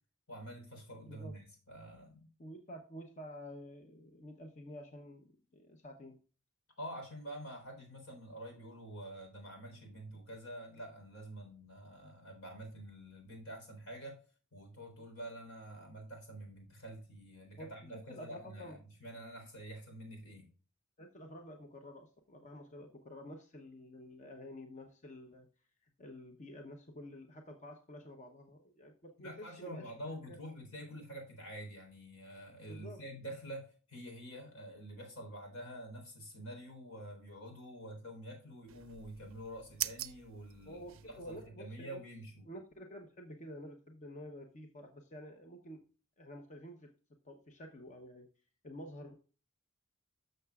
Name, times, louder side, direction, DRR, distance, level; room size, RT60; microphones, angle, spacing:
voice 1, 0.3-2.3 6.8-14.2 14.5-20.5 29.2-42.4, right 1 dB, 75° left, 3 dB, 3.8 m, -47 dB
voice 2, 1.0-1.3 2.4-6.2 17.6-18.8 21.0-25.5 25.8-29.9 30.2-30.4 32.7-33.0 40.7-42.0 42.5-45.8 46.2-46.9 47.2-48.3 48.6-49.1, equal, 35° left, 4 dB, 0.8 m, -50 dB
sound 1, 38.7-41.5, right 15 dB, 65° right, 0.5 m, -43 dB
12.5 x 6.6 x 2.4 m, 0.37 s
head